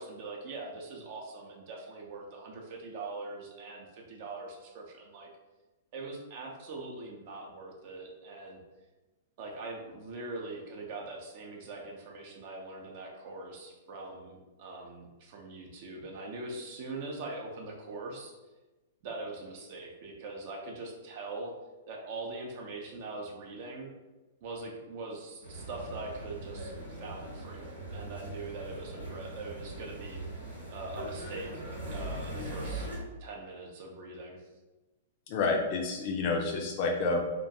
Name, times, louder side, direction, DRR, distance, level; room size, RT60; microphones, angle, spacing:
voice 1, 0.0-5.3 5.9-8.6 9.4-18.3 19.0-21.5 21.9-23.9 24.4-27.6 27.9-30.2 30.7-32.9 33.2-34.5, right 3 dB, 45° right, 0 dB, 0.4 m, -42 dB
sound 1, 25.4-33.0, right 1 dB, 85° right, 1.0 m, -40 dB
voice 2, 35.3-37.2, left 3 dB, 40° left, 1 dB, 0.3 m, -29 dB
2.4 x 2.2 x 2.6 m, 1.1 s
figure-of-eight pair, 105°, 0 cm